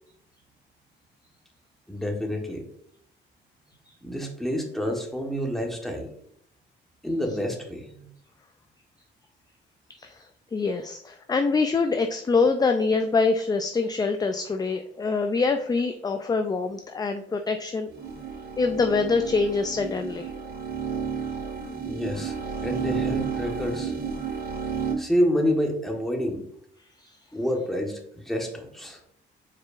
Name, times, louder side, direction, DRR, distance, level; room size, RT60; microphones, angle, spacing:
voice 1, 1.9-2.7 4.0-6.1 7.0-8.1 21.8-22.3 22.6-23.9 25.0-26.4 27.3-29.0, equal, ahead, 1 dB, 1.2 m, -28 dB
voice 2, 10.5-17.9 18.6-20.3 27.0-27.1, left 4 dB, 20° left, 6 dB, 0.4 m, -25 dB
sound 1, 17.9-24.9, right 6 dB, 55° right, 1.8 m, -32 dB
4.7 x 4.4 x 2.4 m, 0.68 s
cardioid pair, 90°, 20 cm